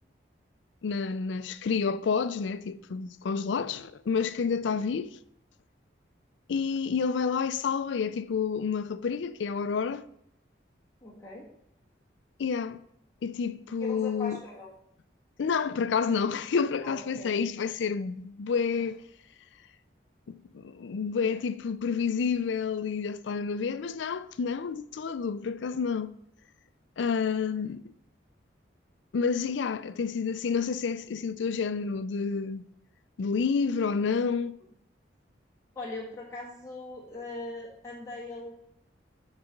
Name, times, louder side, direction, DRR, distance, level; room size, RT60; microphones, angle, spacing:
voice 1, 0.8-5.2 6.5-10.0 12.4-12.8 13.2-14.4 15.4-19.0 20.3-26.1 27.0-27.8 29.1-32.6 33.2-34.6, left 5 dB, 80° left, 0.4 m, -29 dB
voice 2, 11.0-11.5 13.8-14.7 16.8-17.3 18.8-18.9 21.3-21.4 35.7-38.5, left 2 dB, 15° left, 1.4 m, -40 dB
8.0 x 4.0 x 5.2 m
head